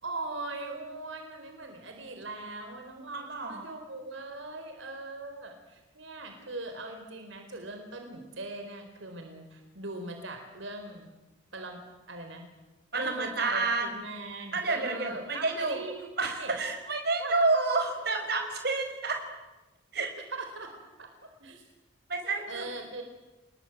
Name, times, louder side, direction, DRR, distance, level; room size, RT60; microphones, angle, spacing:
voice 1, 0.0-11.1 11.5-11.8 12.1-12.5 12.9-16.5 17.2-17.3 20.3-21.6 22.5-23.0, right 2 dB, 80° right, 4 dB, 4.2 m, -40 dB
voice 2, 3.1-3.7 12.9-13.9 14.5-15.8 16.2-19.2 19.9-20.1 22.1-22.6, right 3 dB, 55° right, 4 dB, 5.3 m, -29 dB
28.0 x 21.0 x 9.1 m, 1.1 s
head